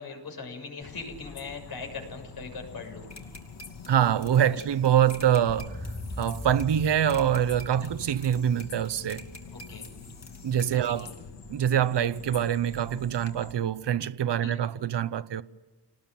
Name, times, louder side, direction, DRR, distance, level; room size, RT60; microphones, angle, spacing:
voice 1, 0.0-3.1 4.5-4.7 7.8-7.9 9.7-9.9 10.7-11.1 14.4-14.6, left 4 dB, 60° left, 7.0 m, -40 dB
sound 1, 0.8-13.5, left 5 dB, 85° left, 2.4 m, -46 dB
sound 2, 3.1-11.1, left 2 dB, 40° left, 3.1 m, -50 dB
voice 2, 3.9-5.8 6.2-9.3 10.4-11.1 11.5-15.4, right 9 dB, 85° right, 0.9 m, -25 dB
sound 3, 5.5-10.8, left 1 dB, 20° left, 5.0 m, -41 dB
28.5 x 19.5 x 9.2 m
wide cardioid pair, 150°, 41 cm